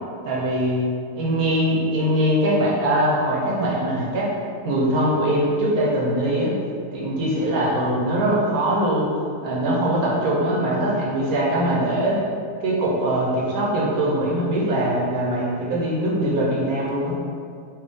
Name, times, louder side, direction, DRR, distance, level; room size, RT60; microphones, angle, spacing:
voice 1, 0.2-0.8 1.1-4.3 4.6-6.5 6.9-9.1 9.4-12.2 12.6-17.1, right 1 dB, 90° right, -5 dB, 1.4 m, -22 dB
4.6 x 2.7 x 3.5 m, 2.3 s
omnidirectional pair, 1.5 m